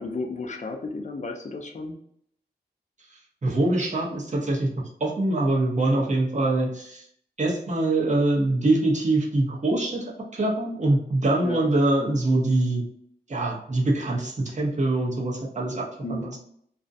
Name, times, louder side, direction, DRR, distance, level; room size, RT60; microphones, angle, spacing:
voice 1, 0.0-2.0 11.4-11.7 16.0-16.3, left 3 dB, 40° left, 3 dB, 0.5 m, -33 dB
voice 2, 3.4-4.7 5.0-7.1 7.4-10.0 10.3-12.8 13.3-16.4, right 2 dB, 40° right, -2 dB, 0.7 m, -24 dB
2.4 x 2.1 x 2.6 m, 0.67 s
wide cardioid pair, 90°, 18 cm